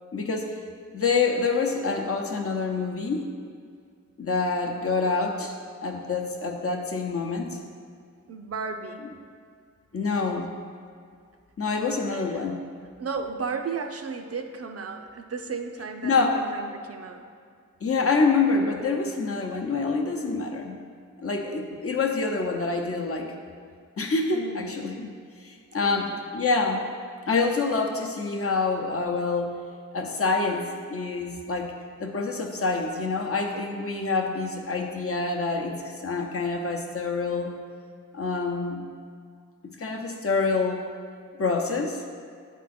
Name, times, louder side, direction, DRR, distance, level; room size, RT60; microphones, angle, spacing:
voice 1, 0.1-0.5 0.9-3.3 4.2-5.6 5.8-7.6 9.9-10.5 11.6-12.6 16.0-16.4 17.8-20.8 21.2-23.3 24.0-25.1 25.4-26.8 27.3-29.5 29.9-31.7 32.0-37.5 38.1-38.8 39.8-40.8 41.4-42.0, left 4 dB, 45° left, 1 dB, 0.8 m, -26 dB
voice 2, 8.3-9.1 10.1-10.5 12.1-12.5 13.0-17.2 24.3-24.7 25.8-26.2 33.5-33.7, right 5 dB, 50° right, 5 dB, 0.5 m, -35 dB
8.3 x 3.7 x 4.2 m, 2.2 s
cardioid pair, 75°, 31 cm